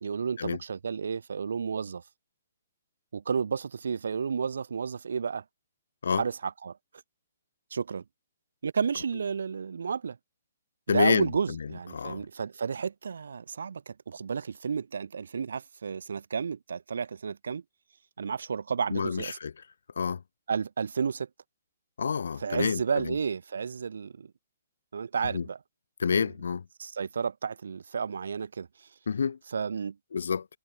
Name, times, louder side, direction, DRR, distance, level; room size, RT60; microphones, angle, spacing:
voice 1, 0.0-2.0 3.1-5.4 6.1-6.8 7.7-8.0 8.6-10.2 10.9-17.6 18.2-19.4 20.5-21.3 22.4-24.3 24.9-25.6 26.1-26.3 26.8-28.9 29.5-30.0, right 6 dB, 75° right, 0.8 m, -32 dB
voice 2, 10.9-11.3 11.9-12.2 18.9-19.5 20.0-20.2 22.0-22.8 25.3-25.4 26.0-26.6 29.1-29.4 30.1-30.4, left 6 dB, 75° left, 0.4 m, -27 dB
hypercardioid pair, 175°, 0 cm